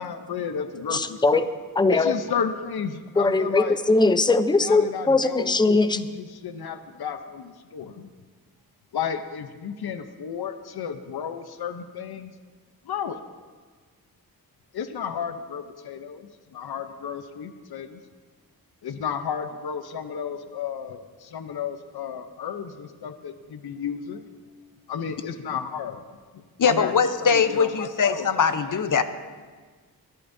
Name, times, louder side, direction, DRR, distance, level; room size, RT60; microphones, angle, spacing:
voice 1, 0.0-1.5 1.9-3.8 4.6-5.6 5.9-8.1 8.9-12.3 12.8-13.2 14.7-18.0 18.8-24.2 24.9-26.0 26.7-26.9 27.2-28.8, left 7 dB, 85° left, 9 dB, 0.8 m, -33 dB
voice 2, 0.9-1.5 1.8-2.1 3.2-6.0, left 3 dB, 10° left, 11 dB, 0.5 m, -20 dB
voice 3, 26.6-29.0, left 6 dB, 55° left, 10 dB, 0.8 m, -21 dB
23.5 x 11.5 x 2.7 m, 1.5 s
wide cardioid pair, 90°, 37 cm